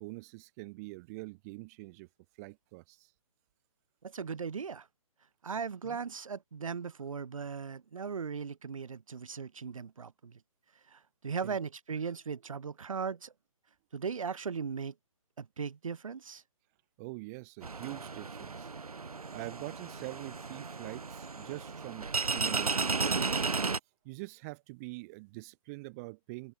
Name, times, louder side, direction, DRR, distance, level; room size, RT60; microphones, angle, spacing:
voice 1, 0.0-2.1 2.4-3.1 5.8-6.0 11.4-11.6 17.0-18.7 19.3-23.7 24.0-26.5, right 26 dB, 25° right, 3.8 m, -44 dB
voice 2, 4.0-4.9 5.4-10.4 10.9-13.3 13.9-14.9 15.4-16.4, right 6 dB, 65° right, 6.2 m, -38 dB
sound 1, 17.6-23.8, right 4 dB, 90° right, 1.2 m, -34 dB
hypercardioid pair, 145°, 18 cm